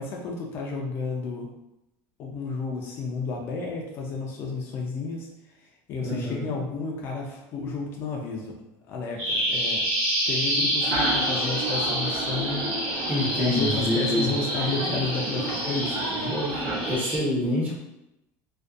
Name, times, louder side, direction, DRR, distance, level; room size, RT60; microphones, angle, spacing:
voice 1, 0.0-1.5 2.2-5.3 5.6-8.5 8.9-9.8 10.3-12.7 13.3-16.3, left 4 dB, 35° left, 0 dB, 0.3 m, -32 dB
voice 2, 6.0-6.5 13.1-14.4 14.8-14.9 16.3-17.8, left 1 dB, 25° right, -5 dB, 0.7 m, -27 dB
Bird vocalization bird call bird song, 9.2-17.2, equal, 85° right, 1.3 m, -28 dB
sound 1, 10.8-17.0, right 2 dB, 65° right, 0.8 m, -32 dB
2.5 x 2.2 x 2.3 m, 0.89 s
cardioid pair, 165°, 7 cm